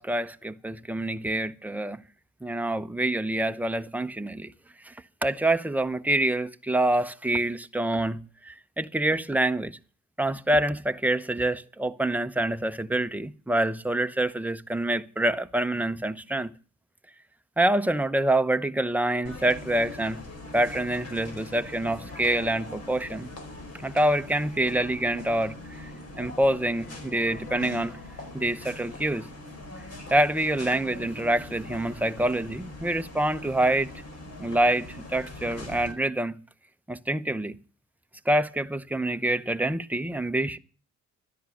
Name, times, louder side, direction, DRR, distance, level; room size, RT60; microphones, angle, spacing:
voice 1, 0.0-2.0 2.4-4.5 4.8-4.9 5.2-9.8 10.2-16.5 17.6-20.2 20.5-23.3 23.8-25.9 26.2-28.0 28.3-29.3 30.1-33.9 34.4-36.4 36.9-37.6 38.3-40.6, right 1 dB, 5° right, 0.8 m, -26 dB
sound 1, 19.2-35.9, left 2 dB, 55° left, 4.6 m, -42 dB
13.0 x 10.0 x 7.1 m
cardioid pair, 90°, 30 cm